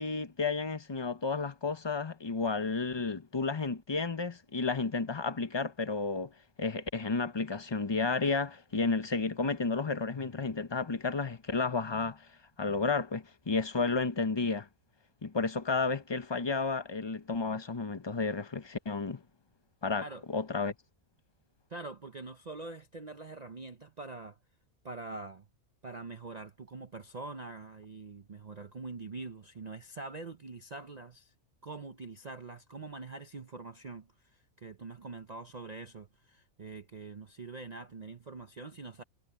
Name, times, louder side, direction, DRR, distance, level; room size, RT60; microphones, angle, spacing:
voice 1, 0.0-6.3 6.6-12.3 12.6-14.7 15.2-19.2 19.8-20.7, left 4 dB, 25° left, 0.6 m, -32 dB
voice 2, 21.7-24.4 24.8-25.5 25.8-31.3 31.6-39.0, right 3 dB, 40° right, 0.6 m, -44 dB
omnidirectional pair, 1.5 m